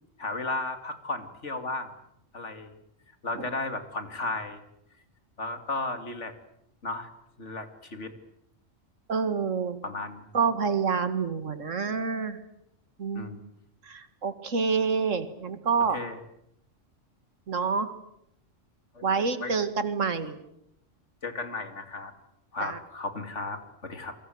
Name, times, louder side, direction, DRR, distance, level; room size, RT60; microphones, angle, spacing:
voice 1, 0.2-1.9 2.3-2.7 3.2-4.6 5.4-6.3 6.8-7.1 7.4-8.1 9.8-10.2 13.1-13.4 15.9-16.2 18.9-19.0 19.4-19.5 21.2-22.1 22.5-24.1, left 3 dB, 65° left, 8 dB, 3.0 m, -34 dB
voice 2, 9.1-9.8 10.3-12.4 13.0-13.3 13.9-16.0 17.5-17.9 19.0-20.4 22.6-22.8, right 5 dB, 75° right, 11 dB, 2.2 m, -27 dB
28.5 x 23.0 x 7.9 m, 0.77 s
omnidirectional pair, 1.3 m